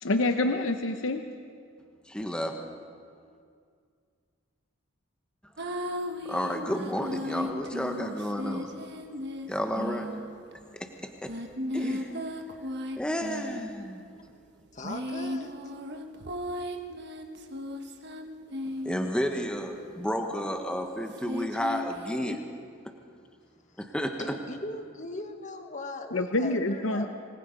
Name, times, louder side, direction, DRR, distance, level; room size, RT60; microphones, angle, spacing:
voice 1, 0.0-1.2 26.1-27.1, left 2 dB, 70° left, 6 dB, 0.9 m, -26 dB
voice 2, 2.1-2.6 6.3-8.7 9.5-10.1 11.2-11.3 11.7-12.1 13.0-14.0 18.8-22.4 23.8-24.3, equal, 5° left, 3 dB, 1.2 m, -31 dB
sound 1, 5.6-10.5 11.2-13.8 14.6-19.2 21.1-22.4, left 1 dB, 55° right, 1.4 m, -36 dB
voice 3, 14.7-15.5 19.9-20.4 23.7-23.9 24.2-27.1, left 2 dB, 35° left, 5 dB, 1.6 m, -40 dB
26.0 x 20.0 x 5.3 m, 2.2 s
head